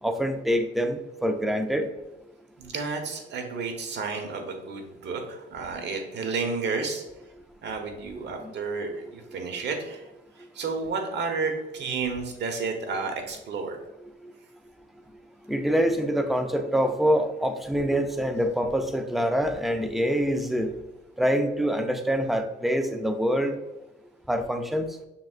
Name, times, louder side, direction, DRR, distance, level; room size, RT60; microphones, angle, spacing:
voice 1, 0.0-1.9 8.4-8.5 14.2-14.3 15.5-20.7 21.2-23.5 24.3-24.9, equal, ahead, 6 dB, 0.5 m, -25 dB
voice 2, 2.6-7.0 7.6-10.1 10.4-13.8, right 4 dB, 60° right, 4 dB, 1.0 m, -31 dB
5.8 x 3.8 x 2.4 m, 0.96 s
cardioid pair, 90°, 20 cm